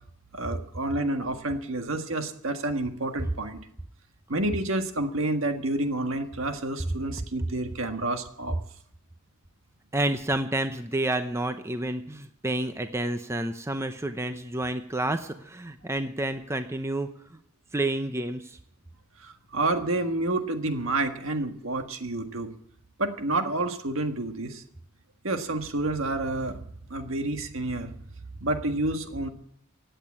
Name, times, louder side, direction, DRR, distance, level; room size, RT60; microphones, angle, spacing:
voice 1, 0.3-3.6 4.3-8.6 19.2-22.5 23.0-24.6 25.2-26.6 26.9-27.9 28.4-29.3, right 2 dB, 70° right, 6 dB, 1.7 m, -29 dB
voice 2, 9.9-17.4 17.7-18.6, right 1 dB, 10° right, 8 dB, 0.7 m, -29 dB
16.5 x 9.0 x 8.7 m, 0.69 s
head